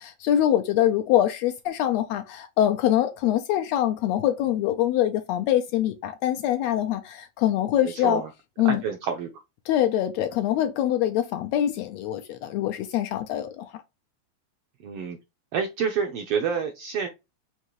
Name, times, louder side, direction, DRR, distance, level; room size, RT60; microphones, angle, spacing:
voice 1, 0.0-8.2 8.6-8.8 9.7-13.7, left 12 dB, 80° left, 1.6 m, -24 dB
voice 2, 8.6-9.3 14.8-15.2 15.5-17.1, right 6 dB, 75° right, 1.3 m, -28 dB
5.3 x 2.5 x 3.0 m
omnidirectional pair, 3.3 m